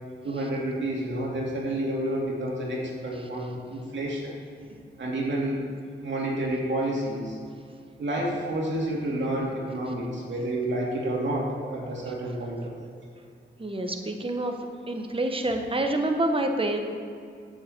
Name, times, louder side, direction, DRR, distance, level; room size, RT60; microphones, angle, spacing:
voice 1, 0.2-4.3 5.0-5.6 6.0-7.4 8.0-12.7, right 1 dB, 70° right, -3 dB, 2.6 m, -29 dB
voice 2, 13.6-14.5 14.9-16.8, right 1 dB, 25° right, 4 dB, 1.3 m, -27 dB
8.1 x 6.3 x 8.0 m, 2.3 s
cardioid pair, 55°, 20 cm